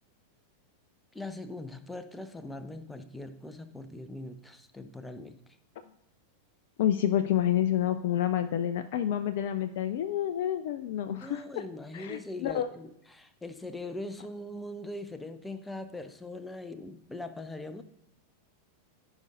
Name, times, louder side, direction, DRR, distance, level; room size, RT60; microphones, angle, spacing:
voice 1, 1.1-5.4 11.1-17.8, left 2 dB, 5° left, 10 dB, 0.6 m, -41 dB
voice 2, 6.8-11.4 11.9-12.7, left 11 dB, 55° left, 11 dB, 0.3 m, -28 dB
14.5 x 5.0 x 2.6 m, 0.79 s
figure-of-eight pair, 90°, 0 cm